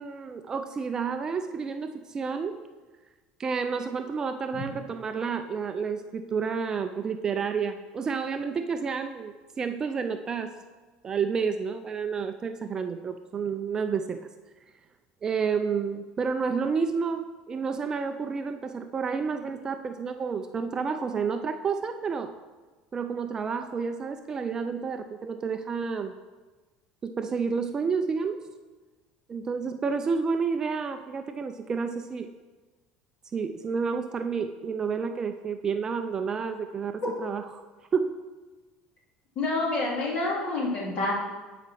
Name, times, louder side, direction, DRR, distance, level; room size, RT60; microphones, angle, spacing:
voice 1, 0.0-2.6 3.4-10.5 11.0-14.2 15.2-22.3 22.9-26.1 27.0-28.4 29.3-32.3 33.3-37.6 37.9-38.2, right 5 dB, 25° right, 7 dB, 0.4 m, -30 dB
voice 2, 39.3-41.1, left 2 dB, 40° left, -4 dB, 3.2 m, -28 dB
11.0 x 5.0 x 5.8 m, 1.3 s
cardioid pair, 145°, 3 cm